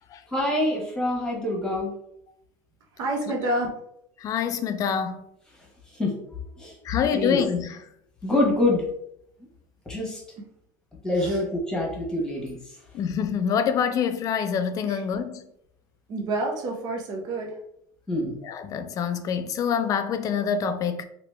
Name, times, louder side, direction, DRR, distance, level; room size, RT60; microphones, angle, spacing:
voice 1, 0.3-1.9 6.0-6.7 7.1-7.4 8.2-8.8 9.9-10.2 11.0-12.6 18.1-18.3, left 1 dB, 5° left, 1.2 m, -25 dB
voice 2, 2.9-3.7 10.4-10.5 11.1-11.4 14.8-15.0 16.1-17.6, right 2 dB, 45° right, 0.8 m, -29 dB
voice 3, 4.2-5.2 6.8-7.8 12.9-15.5 18.4-21.0, left 7 dB, 35° left, 0.4 m, -26 dB
2.9 x 2.9 x 3.3 m
supercardioid pair, 125°, 10 cm